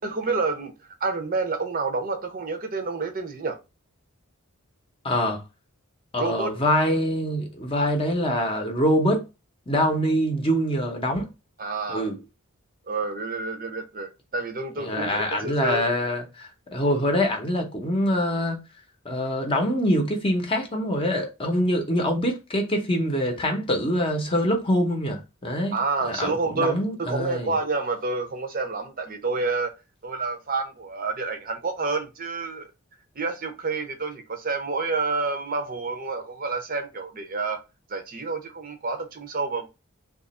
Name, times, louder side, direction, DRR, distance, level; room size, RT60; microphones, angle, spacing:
voice 1, 0.0-3.6 6.2-6.5 11.6-12.1 12.9-15.8 25.7-29.7 30.0-32.7 33.2-37.6 37.9-39.7, right 3 dB, 40° right, 0.6 m, -29 dB
voice 2, 5.0-5.4 6.1-9.2 9.7-11.3 11.9-12.2 14.8-18.6 19.0-25.8 26.0-27.5, equal, 25° left, 0.7 m, -24 dB
2.9 x 2.4 x 4.1 m
head